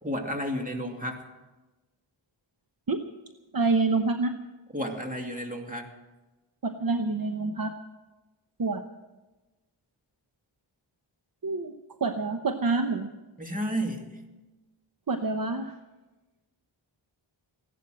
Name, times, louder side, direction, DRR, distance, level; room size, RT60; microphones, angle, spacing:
voice 1, 0.0-1.2 4.7-5.9 13.4-14.1, equal, 15° right, 2 dB, 2.5 m, -32 dB
voice 2, 3.5-4.3 6.6-7.7 8.6-8.8 11.4-11.7 12.0-13.1 15.1-15.7, right 3 dB, 45° right, 6 dB, 0.9 m, -27 dB
16.5 x 11.5 x 7.6 m, 1.1 s
wide cardioid pair, 85°, 48 cm